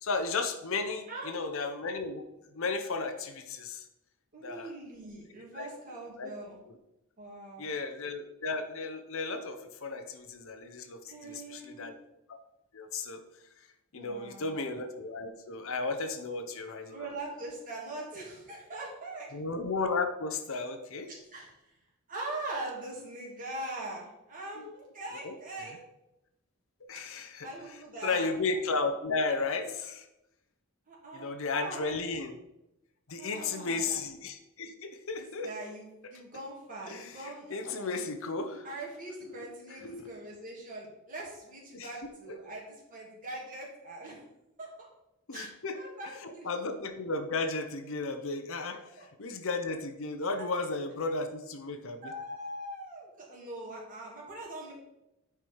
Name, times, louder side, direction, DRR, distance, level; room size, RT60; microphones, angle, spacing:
voice 1, 0.0-2.2 2.5-3.8 4.4-4.7 5.5-6.3 7.6-11.9 12.7-13.2 13.9-17.1 19.3-21.1 24.6-24.7 25.2-25.3 26.9-27.5 28.0-30.1 31.1-32.4 33.1-35.5 36.9-38.7 39.3-39.4 39.8-40.1 41.7-41.9 45.3-45.7 46.2-52.1, left 3 dB, 65° left, 8 dB, 0.8 m, -34 dB
voice 2, 4.3-6.6 7.2-7.7 11.1-11.9 13.9-14.6 16.9-19.3 21.1-21.8 22.1-25.8 27.4-28.3 30.9-31.8 33.2-34.1 35.1-37.9 38.6-44.2 44.6-44.9 45.3-46.5 49.0-49.1 50.4-50.5 52.0-54.7, right 2 dB, 40° right, -4 dB, 2.7 m, -42 dB
9.2 x 4.7 x 4.7 m, 0.90 s
head